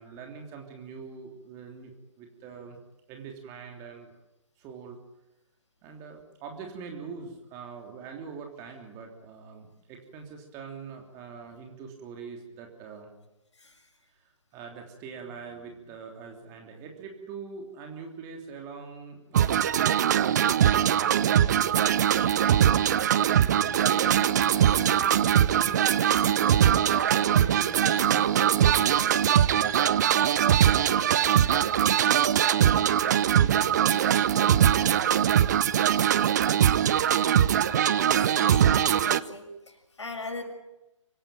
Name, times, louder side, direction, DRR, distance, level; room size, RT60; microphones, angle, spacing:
voice 1, 0.0-2.8 3.1-4.2 4.6-5.0 5.8-13.1 14.1-22.1 22.9-35.4, right 5 dB, 20° right, 3 dB, 3.2 m, -43 dB
sound 1, 19.3-39.2, right 9 dB, 35° right, 0.8 m, -22 dB
voice 2, 37.7-38.1 38.4-40.4, left 3 dB, 60° left, 4 dB, 6.8 m, -40 dB
25.5 x 16.5 x 9.2 m, 0.96 s
figure-of-eight pair, 140°, 17 cm